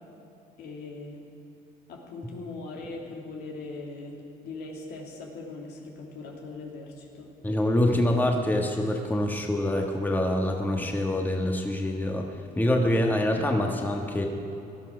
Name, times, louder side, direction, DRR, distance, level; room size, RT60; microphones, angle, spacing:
voice 1, 0.6-1.2 1.9-7.3, left 3 dB, 75° left, 0 dB, 3.0 m, -40 dB
voice 2, 7.4-12.3 12.6-14.3, left 1 dB, 10° left, 2 dB, 1.5 m, -25 dB
18.0 x 12.5 x 6.2 m, 3.0 s
cardioid pair, 110°, 17 cm